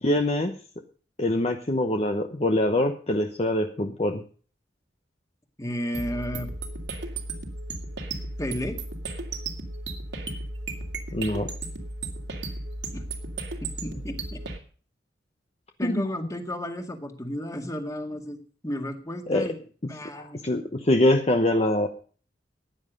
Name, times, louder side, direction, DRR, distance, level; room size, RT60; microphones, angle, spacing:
voice 1, 0.0-0.5 1.2-4.2 11.1-11.5 15.8-16.0 19.3-19.5 20.1-21.9, left 1 dB, 35° left, 5 dB, 1.0 m, -24 dB
voice 2, 5.6-6.5 8.4-8.8 12.9-13.0 13.6-14.4 15.8-18.4 18.6-19.6 19.9-20.4, equal, 20° left, 5 dB, 2.0 m, -33 dB
sound 1, 5.9-14.6, right 2 dB, 80° right, 2.6 m, -35 dB
15.5 x 9.9 x 5.3 m, 0.41 s
head